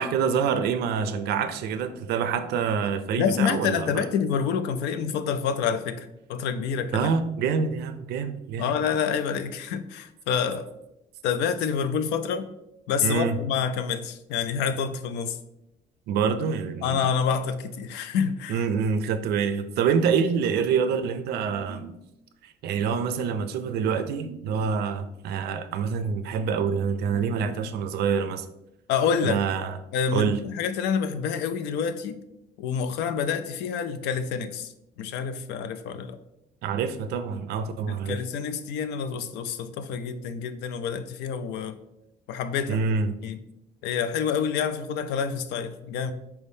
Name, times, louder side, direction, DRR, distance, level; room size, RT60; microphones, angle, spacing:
voice 1, 0.0-4.1 6.9-8.7 13.0-13.4 16.1-17.0 18.5-22.0 22.4-28.5 29.2-29.8 30.1-30.4 36.6-38.2 42.7-43.2, right 6 dB, 70° right, 10 dB, 0.4 m, -26 dB
voice 2, 3.2-7.1 8.6-10.7 11.2-12.5 12.9-15.4 16.8-18.6 28.9-29.4 29.9-32.2 32.6-36.2 37.9-41.8 42.3-42.8 43.2-43.4 43.8-46.1, left 7 dB, 85° left, 11 dB, 0.4 m, -27 dB
4.5 x 3.5 x 2.6 m, 0.86 s
cardioid pair, 110°, 17 cm